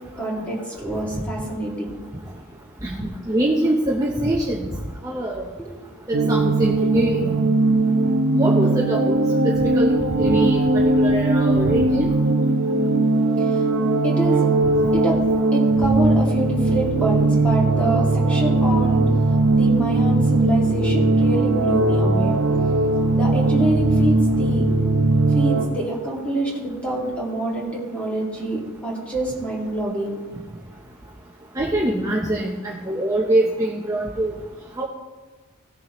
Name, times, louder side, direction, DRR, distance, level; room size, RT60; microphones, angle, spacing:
voice 1, 0.2-1.9 5.6-5.7 14.0-14.4 14.9-15.2 15.5-19.0 19.5-22.3 23.1-24.6 25.3-30.2, right 1 dB, 5° left, -4 dB, 2.5 m, -26 dB
voice 2, 2.8-4.7 5.0-5.4 6.3-7.4 8.3-9.1 9.4-12.1 31.6-34.3 34.8-34.9, right 1 dB, 15° right, -3 dB, 0.9 m, -23 dB
sound 1, 6.1-25.7, right 2 dB, 60° right, 0.9 m, -19 dB
17.5 x 6.9 x 3.2 m, 1.3 s
head